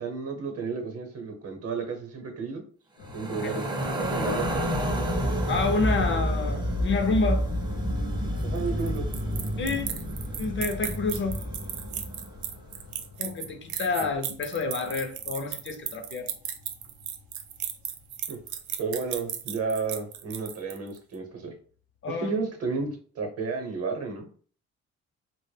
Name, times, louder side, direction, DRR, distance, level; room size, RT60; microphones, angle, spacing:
voice 1, 0.0-2.6 3.1-3.7 4.0-4.5 8.4-9.1 18.3-18.4 18.8-21.5 22.1-24.3, right 4 dB, 50° right, 0.8 m, -32 dB
sound 1, 3.0-20.2 21.9-22.0 22.3-22.4, left 3 dB, 90° left, 0.7 m, -47 dB
sound 2, 3.1-12.4, equal, 15° right, 0.5 m, -29 dB
voice 2, 5.5-7.4 9.6-9.9 10.4-11.4 13.2-16.3 22.0-22.3, left 4 dB, 40° left, 0.5 m, -28 dB
sound 3, 8.4-21.0, right 9 dB, 75° right, 0.5 m, -35 dB
2.1 x 2.0 x 3.2 m
cardioid pair, 90°, 30 cm